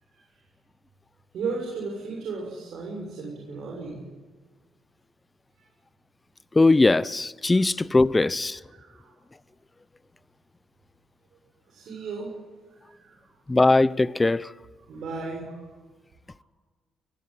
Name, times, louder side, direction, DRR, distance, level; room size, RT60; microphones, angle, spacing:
voice 1, 1.3-4.1 7.5-7.6 8.7-9.1 11.7-12.3 12.8-13.3 14.9-15.6, right 4 dB, 70° right, 6.6 m, -35 dB
voice 2, 6.5-8.6 13.5-14.5, left 2 dB, 20° left, 0.6 m, -20 dB
24.0 x 16.0 x 9.5 m
cardioid pair, 90°, 0 cm